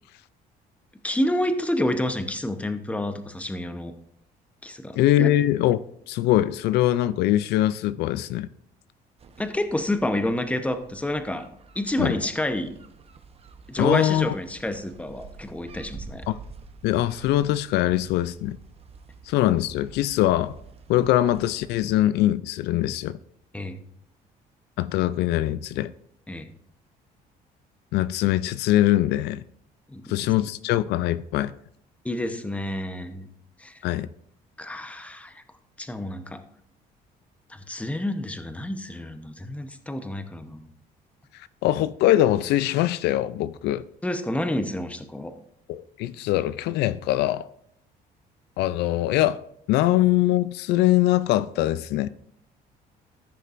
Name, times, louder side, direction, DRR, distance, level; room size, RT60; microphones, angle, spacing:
voice 1, 1.0-3.9 4.6-5.3 9.4-11.5 11.7-12.7 13.7-16.2 23.5-23.8 26.3-26.5 29.9-30.0 32.0-33.3 33.6-33.8 34.6-35.4 35.8-36.4 37.5-40.7 44.0-45.3, left 1 dB, 10° left, 0.9 m, -29 dB
voice 2, 5.0-5.8 6.1-8.5 12.0-12.2 13.8-14.3 16.3-16.4 16.8-18.6 19.3-20.5 20.9-23.2 24.8-25.9 27.9-29.4 30.1-31.5 33.8-34.1 41.6-43.8 45.7-47.5 48.6-49.4 49.7-52.1, left 14 dB, 85° left, 0.4 m, -22 dB
sound 1, 9.2-22.1, right 4 dB, 35° right, 0.9 m, -48 dB
14.5 x 6.6 x 2.5 m
cardioid pair, 110°, 17 cm